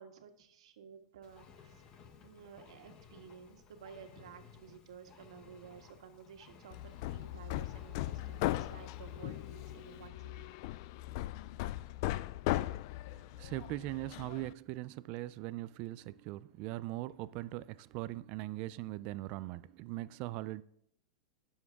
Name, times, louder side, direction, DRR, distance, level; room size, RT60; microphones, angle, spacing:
voice 1, 0.0-1.8 2.2-10.5, right 7 dB, 85° right, 1.6 m, -54 dB
Engine, 1.2-10.1, left 6 dB, 25° left, 1.0 m, -58 dB
Hammer, 6.7-14.5, left 16 dB, 45° left, 0.3 m, -38 dB
voice 2, 13.1-20.6, right 17 dB, 35° right, 0.3 m, -40 dB
19.5 x 7.1 x 3.6 m
supercardioid pair, 160°, 3 cm